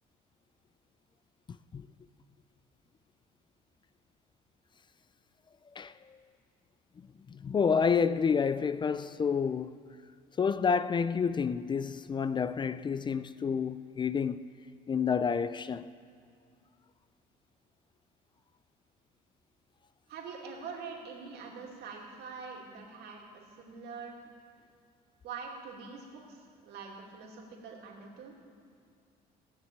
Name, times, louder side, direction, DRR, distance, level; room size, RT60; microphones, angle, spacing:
voice 1, 5.8-6.2 7.3-9.9 10.4-14.5 14.9-15.9, left 6 dB, 25° left, 0.4 m, -29 dB
voice 2, 20.1-24.2 25.2-28.4, right 5 dB, 75° right, 2.7 m, -44 dB
17.5 x 6.4 x 8.7 m
cardioid pair, 110°, 17 cm